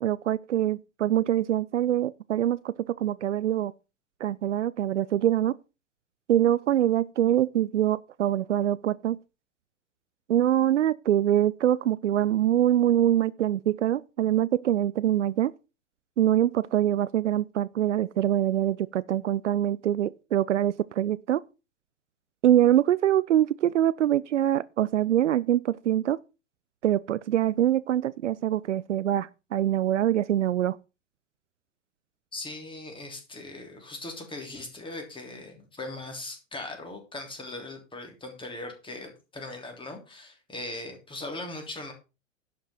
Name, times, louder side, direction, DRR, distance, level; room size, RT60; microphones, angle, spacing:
voice 1, 0.0-3.7 4.2-5.5 6.3-9.2 10.3-15.5 16.2-21.4 22.4-26.2 26.8-30.8, right 12 dB, 70° right, 0.5 m, -24 dB
voice 2, 32.3-41.9, left 2 dB, 15° left, 3.3 m, -39 dB
11.0 x 6.0 x 5.8 m
figure-of-eight pair, 90°, 37 cm